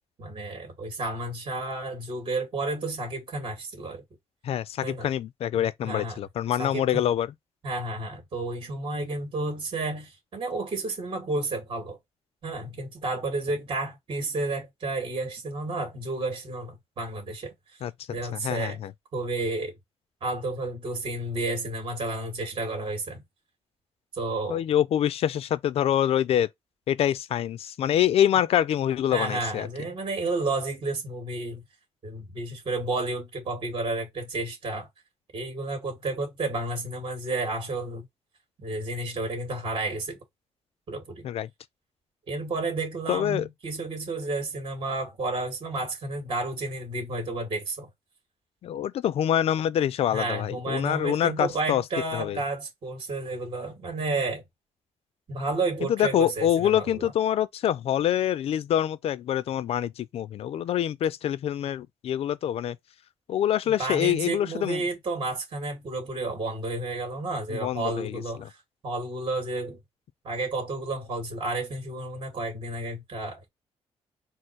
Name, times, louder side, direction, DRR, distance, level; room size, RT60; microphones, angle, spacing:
voice 1, 0.2-4.0 4.8-5.1 5.5-6.2 6.6-7.0 7.6-12.0 12.4-17.5 18.1-18.8 19.1-19.7 20.2-23.2 24.1-24.6 29.1-31.6 32.0-34.9 35.3-38.0 38.6-40.2 40.9-41.2 42.3-47.9 50.1-54.4 55.3-57.1 63.6-68.5 68.8-69.8 70.2-73.5, right 2 dB, 50° right, 2.1 m, -31 dB
voice 2, 4.4-7.3 17.8-17.9 18.3-18.9 24.5-26.5 26.9-29.7 41.2-41.5 43.1-43.4 48.6-51.8 52.1-52.4 55.9-62.8 63.3-64.8 67.5-68.5, left 10 dB, 65° left, 0.4 m, -25 dB
4.4 x 2.0 x 4.5 m
cardioid pair, 115°, 11 cm